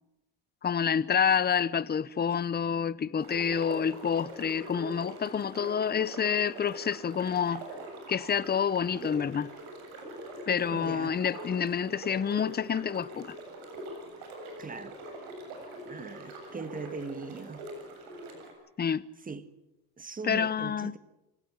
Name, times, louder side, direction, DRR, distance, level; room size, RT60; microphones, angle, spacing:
voice 1, 0.6-7.7 8.1-9.5 10.5-13.3 18.8-19.0 20.2-20.9, left 7 dB, 20° left, 0.7 m, -28 dB
sound 1, 3.2-18.5, right 1 dB, 80° right, 7.9 m, -43 dB
voice 2, 10.7-11.2 14.6-14.9 15.8-17.7 19.3-19.4 20.0-21.0, right 4 dB, 20° right, 1.5 m, -40 dB
25.5 x 17.0 x 8.1 m
supercardioid pair, 110°, 46 cm